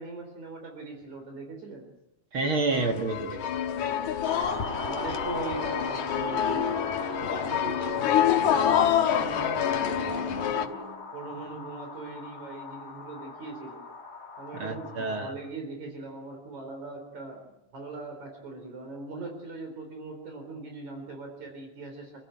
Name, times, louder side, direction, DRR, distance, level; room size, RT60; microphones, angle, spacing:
voice 1, 0.0-1.9 4.6-6.9 7.2-10.6 11.1-13.8 14.4-17.4 17.7-22.3, right 3 dB, 65° right, 4 dB, 5.3 m, -40 dB
voice 2, 2.3-3.5 14.5-15.3, right 3 dB, 45° right, 4 dB, 2.4 m, -29 dB
sound 1, 2.7-10.7, left 9 dB, 75° left, 2.7 m, -27 dB
sound 2, 4.2-15.3, left 3 dB, 20° left, 1.2 m, -39 dB
sound 3, 4.4-11.0, equal, 5° right, 4.4 m, -42 dB
29.0 x 15.5 x 9.1 m, 0.90 s
omnidirectional pair, 3.6 m